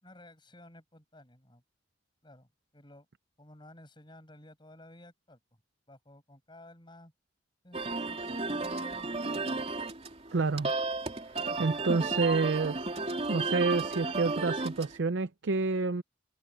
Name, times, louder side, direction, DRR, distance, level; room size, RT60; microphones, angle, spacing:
voice 1, 0.0-1.6 2.2-3.1 3.4-5.4 5.9-7.1 7.6-9.7 11.5-11.7, left 1 dB, 25° left, 7.2 m, -54 dB
sound 1, 7.7-15.0, right 3 dB, 35° right, 3.0 m, -33 dB
voice 2, 10.3-10.7 11.6-12.8 13.3-16.0, right 3 dB, 75° right, 0.6 m, -28 dB
head